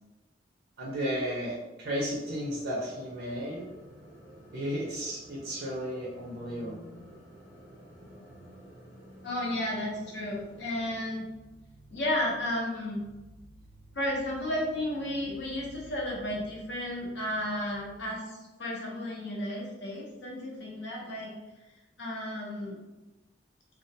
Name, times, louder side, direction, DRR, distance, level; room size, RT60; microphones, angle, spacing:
voice 1, 0.8-3.7 4.5-6.8, equal, 60° right, -4 dB, 0.5 m, -34 dB
sound 1, 2.2-11.0, equal, 10° right, 0.6 m, -51 dB
voice 2, 9.2-11.3 11.9-13.0 13.9-21.3 22.0-22.8, left 1 dB, 65° left, -3 dB, 0.7 m, -33 dB
sound 2, 10.3-18.1, right 1 dB, 85° left, 1.3 m, -54 dB
2.3 x 2.1 x 2.6 m, 1.1 s
head